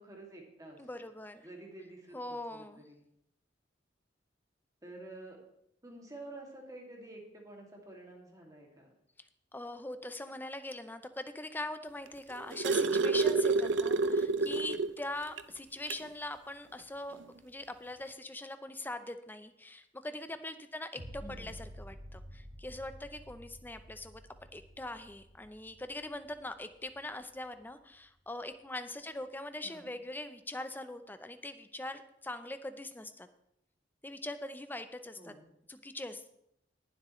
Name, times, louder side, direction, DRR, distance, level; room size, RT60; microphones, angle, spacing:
voice 1, 0.0-0.9 1.4-3.0 4.8-5.4 5.8-8.9 21.2-21.6 29.6-29.9 35.2-35.5, right 2 dB, 20° right, -1 dB, 2.4 m, -49 dB
voice 2, 0.8-1.5 2.1-2.8 9.5-24.2 24.5-33.3 34.0-35.3 35.7-36.3, left 2 dB, 10° left, 10 dB, 0.6 m, -42 dB
sound 1, 12.1-15.0 15.4-15.5 15.9-16.1 17.2-17.3, right 3 dB, 65° right, 0.6 m, -28 dB
sound 2, 21.0-28.0 28.5-28.6, equal, 45° right, 2.2 m, -51 dB
20.0 x 7.6 x 3.2 m, 0.77 s
head